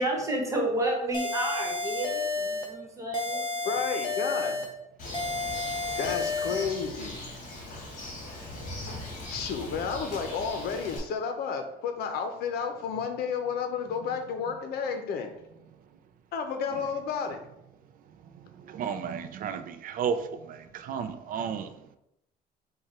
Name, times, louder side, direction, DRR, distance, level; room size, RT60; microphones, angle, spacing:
voice 1, 0.0-3.6, right 1 dB, 20° right, -1 dB, 1.3 m, -30 dB
sound 1, 1.1-2.7 3.1-4.7 5.1-6.7, left 3 dB, 25° left, 0.7 m, -31 dB
voice 2, 3.6-4.6 6.0-7.2 9.3-15.3 16.3-17.4, left 6 dB, 70° left, 6 dB, 0.7 m, -31 dB
Bird, 5.0-11.0, left 1 dB, 50° left, 1.5 m, -40 dB
voice 3, 18.7-20.2 20.5-21.7, right 7 dB, 55° right, 10 dB, 0.5 m, -32 dB
4.8 x 2.3 x 4.2 m, 0.84 s
cardioid pair, 110°, 17 cm